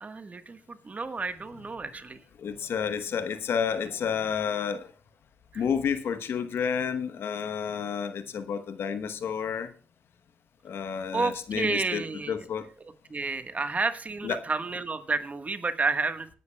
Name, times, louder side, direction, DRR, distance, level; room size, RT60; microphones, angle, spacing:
voice 1, 0.0-2.2 5.5-5.6 11.1-12.4 13.1-16.4, right 3 dB, 35° right, 9 dB, 1.4 m, -30 dB
voice 2, 2.4-4.9 5.5-9.7 10.6-12.7 14.2-14.4, left 7 dB, 65° left, 10 dB, 1.0 m, -30 dB
19.5 x 11.0 x 2.3 m, 0.40 s
hypercardioid pair, 45°, 4 cm